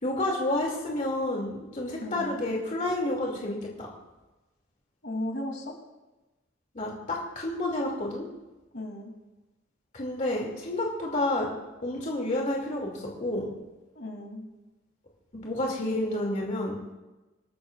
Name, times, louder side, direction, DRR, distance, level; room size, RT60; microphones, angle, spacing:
voice 1, 0.0-3.9 6.7-8.3 9.9-11.5 11.8-13.5 15.3-16.8, left 1 dB, 40° left, -2 dB, 2.6 m, -30 dB
voice 2, 2.0-2.5 5.0-5.7 8.7-9.1 13.9-14.5, left 1 dB, 65° left, 0 dB, 3.0 m, -35 dB
27.5 x 13.0 x 2.5 m, 1.1 s
head